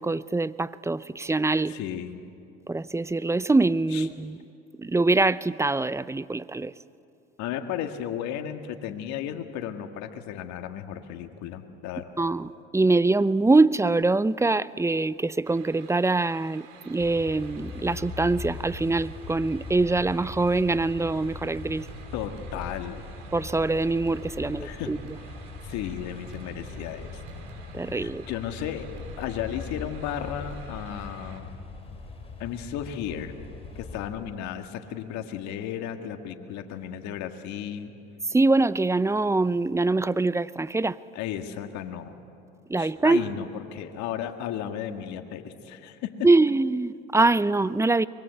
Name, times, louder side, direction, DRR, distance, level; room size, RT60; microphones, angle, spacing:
voice 1, 0.0-1.8 2.7-4.4 4.8-6.7 12.2-21.9 23.3-25.0 27.7-28.2 38.3-41.0 42.7-43.3 46.2-48.1, right 3 dB, 10° right, 17 dB, 0.5 m, -24 dB
voice 2, 1.7-2.2 3.9-4.1 7.4-12.3 22.1-23.1 24.6-24.9 25.6-27.2 27.9-28.9 29.2-31.6 32.4-33.3 33.8-37.9 41.1-42.1 42.8-46.3, left 10 dB, 65° left, 6 dB, 1.9 m, -34 dB
sound 1, 15.4-31.4, right 7 dB, 75° right, 3.1 m, -52 dB
sound 2, 17.0-34.1, left 3 dB, 20° left, 5.5 m, -41 dB
sound 3, 17.9-18.3 18.6-19.7 19.9-20.4 20.7-24.6 24.9-27.0 27.3-28.1 28.4-31.3, right 3 dB, 55° right, 7.8 m, -50 dB
24.0 x 22.5 x 8.1 m, 2.5 s
hypercardioid pair, 75°, 31 cm